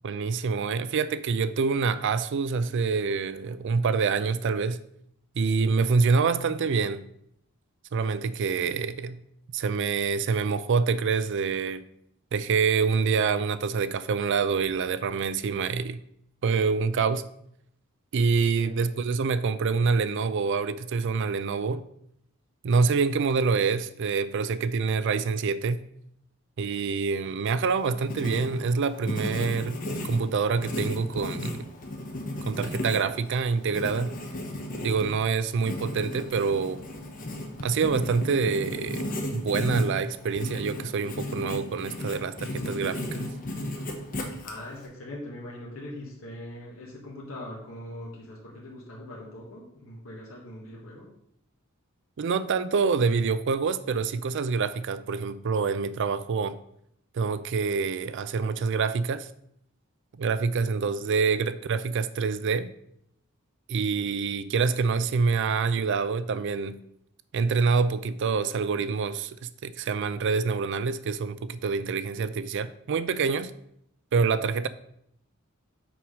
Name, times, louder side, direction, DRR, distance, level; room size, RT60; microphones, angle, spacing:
voice 1, 0.0-4.8 5.4-7.0 7.9-9.2 9.5-11.8 12.3-16.0 16.4-17.2 18.1-21.8 22.6-25.8 26.6-29.8 30.1-31.7 32.4-34.2 34.8-36.8 37.6-43.3 52.2-56.6 57.1-59.3 60.2-62.7 63.7-66.8 67.3-73.5 74.1-74.7, right 5 dB, 60° right, 0.4 m, -26 dB
voice 2, 18.6-19.1 40.2-40.3 44.4-51.1, left 1 dB, 70° left, 1.5 m, -41 dB
Writing, 27.7-44.9, left 1 dB, 40° left, 1.0 m, -35 dB
6.1 x 4.7 x 5.0 m
head